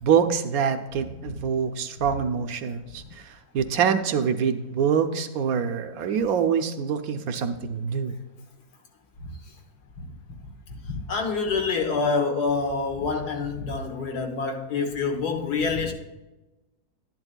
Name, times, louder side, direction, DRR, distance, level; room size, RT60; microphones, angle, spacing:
voice 1, 0.0-8.1, right 7 dB, 70° right, 8 dB, 1.0 m, -25 dB
voice 2, 10.4-15.9, left 4 dB, 80° left, 2 dB, 1.7 m, -27 dB
11.5 x 10.5 x 2.2 m, 1.1 s
omnidirectional pair, 1.7 m